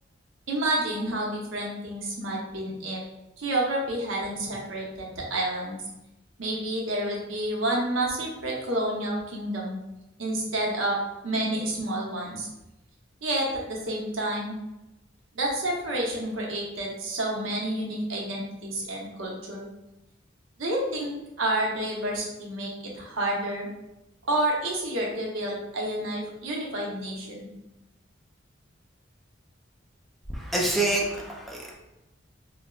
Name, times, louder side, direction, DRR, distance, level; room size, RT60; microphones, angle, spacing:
voice 1, 0.5-3.0 3.4-5.8 6.4-9.8 10.2-11.0 11.2-12.5 13.2-14.6 15.3-19.7 20.6-23.7 24.3-27.5, right 1 dB, 85° right, -2 dB, 0.8 m, -29 dB
voice 2, 30.3-31.7, right 2 dB, ahead, -3 dB, 0.4 m, -27 dB
4.1 x 2.0 x 2.3 m, 0.95 s
head